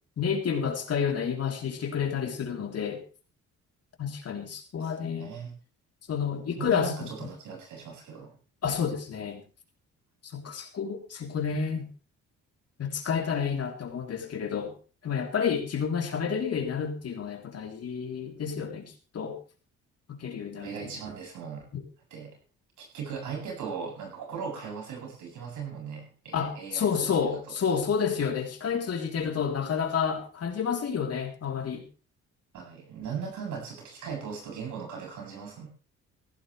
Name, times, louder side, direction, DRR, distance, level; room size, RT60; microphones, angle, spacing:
voice 1, 0.2-3.0 4.0-5.3 6.1-7.1 8.6-9.4 10.3-11.9 12.8-14.7 15.0-19.4 20.1-20.9 21.7-21.8 26.3-31.8, left 6 dB, 55° left, 3 dB, 3.5 m, -30 dB
voice 2, 4.8-5.5 6.6-8.3 20.6-21.7 22.1-22.4 22.8-27.4 32.5-35.7, right 6 dB, 80° right, 1 dB, 8.0 m, -38 dB
16.5 x 15.0 x 3.3 m, 0.35 s
cardioid pair, 90°, 30 cm